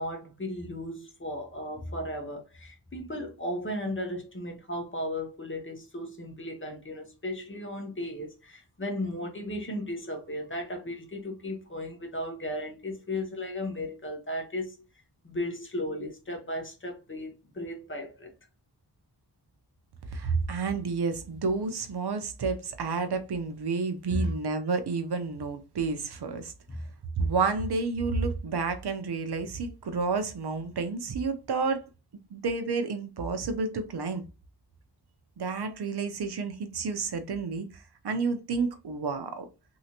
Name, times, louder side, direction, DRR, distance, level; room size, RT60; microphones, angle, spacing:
voice 1, 0.0-14.8 15.2-18.3 24.1-24.3 26.7-26.8, left 1 dB, 30° left, 0.9 m, -35 dB
voice 2, 20.1-26.5 27.2-31.8 32.3-34.2 35.4-39.5, right 4 dB, 65° right, 0.7 m, -30 dB
3.2 x 2.7 x 2.9 m
wide cardioid pair, 115°, 43 cm